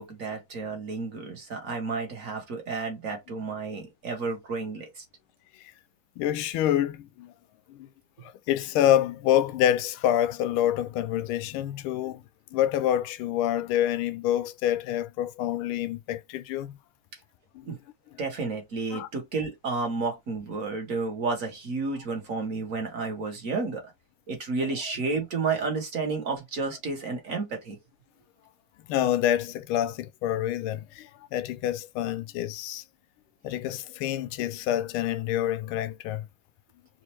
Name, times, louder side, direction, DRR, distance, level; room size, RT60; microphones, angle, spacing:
voice 1, 0.0-5.0 17.6-17.8 18.2-23.8 24.3-27.8, right 4 dB, 45° right, 1.2 m, -31 dB
voice 2, 6.2-7.3 7.7-7.9 8.2-12.2 12.5-16.8 17.5-17.6 18.9-19.1 24.6-24.7 28.9-32.8 33.4-36.3, left 11 dB, 80° left, 1.4 m, -27 dB
4.2 x 2.6 x 3.0 m
omnidirectional pair, 2.4 m